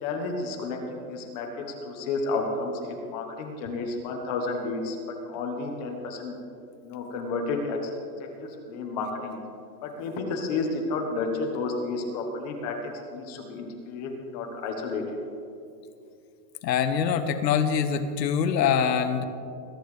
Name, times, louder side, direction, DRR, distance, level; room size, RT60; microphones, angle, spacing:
voice 1, 0.0-5.0 5.3-6.3 6.8-8.0 8.4-9.4 9.8-12.8 13.1-15.0, left 3 dB, 25° left, 2 dB, 1.1 m, -31 dB
voice 2, 16.6-19.2, left 7 dB, 75° left, 9 dB, 1.2 m, -24 dB
21.5 x 11.0 x 3.3 m, 2.6 s
supercardioid pair, 175°, 50 cm